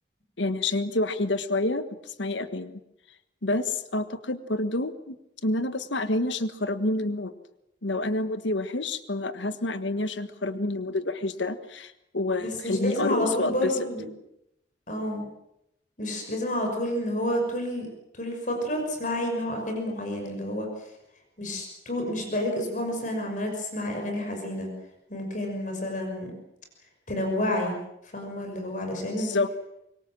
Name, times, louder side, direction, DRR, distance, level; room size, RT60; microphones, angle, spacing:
voice 1, 0.4-2.8 3.4-5.1 5.4-7.3 7.8-13.7 29.2-29.5, left 2 dB, 90° left, 11 dB, 1.5 m, -28 dB
voice 2, 12.4-14.1 14.9-15.3 16.0-17.9 18.1-20.7 21.4-24.7 25.1-26.3 27.1-27.8 28.0-29.3, left 1 dB, 45° left, 2 dB, 5.9 m, -29 dB
25.0 x 23.5 x 7.5 m, 0.83 s
head